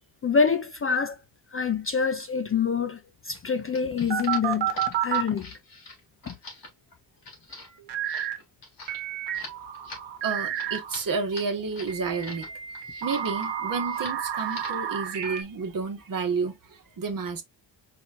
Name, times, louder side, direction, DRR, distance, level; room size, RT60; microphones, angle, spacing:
voice 1, 0.2-1.2 1.5-5.5 6.3-6.4, left 6 dB, 30° left, 0.5 m, -26 dB
sound 1, 3.3-12.5 12.7-13.5 13.8-14.2 14.5-14.9, left 2 dB, 50° left, 3.2 m, -44 dB
sound 2, 4.1-5.3 7.9-8.4 8.9-11.0 11.9-15.4, right 10 dB, 65° right, 1.4 m, -30 dB
voice 2, 10.2-12.5 13.0-17.4, right 4 dB, 45° right, 1.4 m, -30 dB
4.8 x 4.2 x 2.5 m
wide cardioid pair, 135°, 46 cm